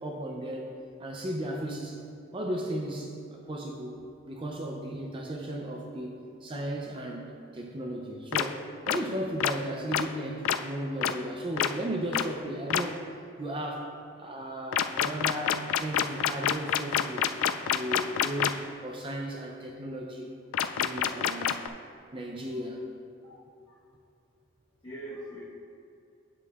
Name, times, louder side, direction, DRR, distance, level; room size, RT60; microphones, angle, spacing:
voice 1, 0.0-2.0 2.3-3.9 4.3-13.1 13.4-13.9 14.2-17.3 17.6-20.3 20.7-21.7 22.1-22.8, right 1 dB, 25° right, 1 dB, 0.5 m, -35 dB
sound 1, 8.3-8.4 8.9-9.0 9.4-9.5 9.9-10.0 10.4-10.6 11.0-11.1 11.6-11.7 12.1-12.2 12.7-12.8 14.7-18.5 20.5-21.7, left 9 dB, 85° left, 0.3 m, -26 dB
voice 2, 24.8-25.4, right 1 dB, 30° left, -12 dB, 1.3 m, -43 dB
9.5 x 7.3 x 2.4 m, 2.6 s
head